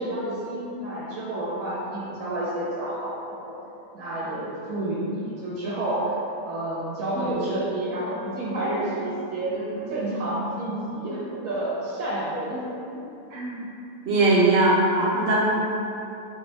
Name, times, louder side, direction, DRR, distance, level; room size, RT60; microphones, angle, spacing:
voice 1, 0.0-3.6 3.9-9.6 9.9-13.0, right 1 dB, 80° right, -7 dB, 1.1 m, -29 dB
voice 2, 13.3-13.6 14.1-15.5, right 2 dB, 55° right, -6 dB, 0.9 m, -21 dB
3.9 x 3.3 x 2.6 m, 2.8 s
omnidirectional pair, 1.4 m